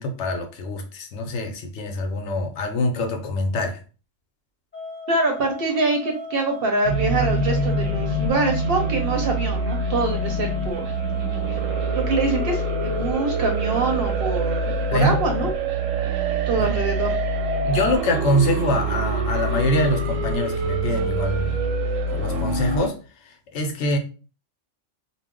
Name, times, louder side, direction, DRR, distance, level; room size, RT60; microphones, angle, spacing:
voice 1, 0.0-3.8 14.9-15.2 17.6-21.6 22.1-23.0 23.5-24.0, left 1 dB, 70° left, 0.9 m, -24 dB
sound 1, 4.7-15.0, left 3 dB, 15° left, 0.3 m, -36 dB
voice 2, 5.1-10.9 11.5-11.6 11.9-15.5 16.5-17.1, right 3 dB, 60° right, 0.7 m, -25 dB
sound 2, 6.8-22.9, right 2 dB, 90° right, 1.0 m, -25 dB
2.3 x 2.0 x 3.5 m
omnidirectional pair, 1.3 m